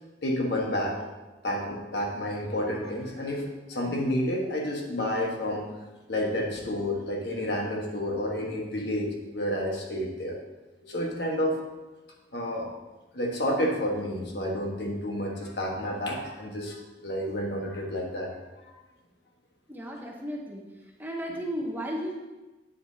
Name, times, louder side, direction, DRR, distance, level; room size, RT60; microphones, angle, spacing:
voice 1, 0.2-1.0 1.4-5.7 6.1-10.4 10.8-11.6 12.3-12.7 13.1-18.3 18.6-18.7, left 1 dB, 65° left, 0 dB, 1.4 m, -30 dB
voice 2, 19.7-20.6 21.0-22.2, equal, 10° right, -1 dB, 0.9 m, -34 dB
8.8 x 7.7 x 2.8 m, 1.1 s
head